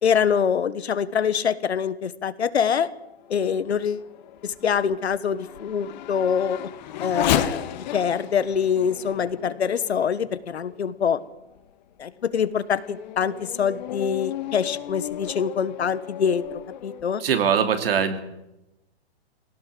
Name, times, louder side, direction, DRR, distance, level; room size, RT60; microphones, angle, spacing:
voice 1, 0.0-2.9 3.3-4.1 4.4-6.6 7.0-11.2 12.0-16.4 16.8-17.2, left 7 dB, 80° left, 15 dB, 1.4 m, -24 dB
Race car auto racing / Accelerating revving vroom, 3.0-10.9 11.5-11.6 12.2-17.0, left 11 dB, 45° left, 1.6 m, -33 dB
voice 2, 17.2-18.2, right 7 dB, 60° right, 8 dB, 2.9 m, -22 dB
21.0 x 18.0 x 7.7 m, 0.91 s
hypercardioid pair, 135°, 32 cm